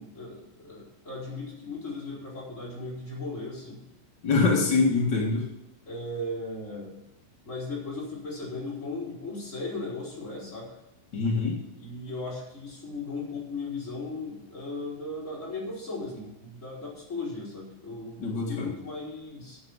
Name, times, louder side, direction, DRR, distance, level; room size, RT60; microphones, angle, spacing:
voice 1, 0.0-3.8 5.9-7.0 7.5-10.8 11.8-19.6, left 2 dB, 15° left, -5 dB, 4.1 m, -37 dB
voice 2, 4.2-5.5 11.1-11.6 18.2-18.7, left 4 dB, 70° left, -2 dB, 1.0 m, -24 dB
9.8 x 8.0 x 7.1 m, 0.88 s
omnidirectional pair, 5.0 m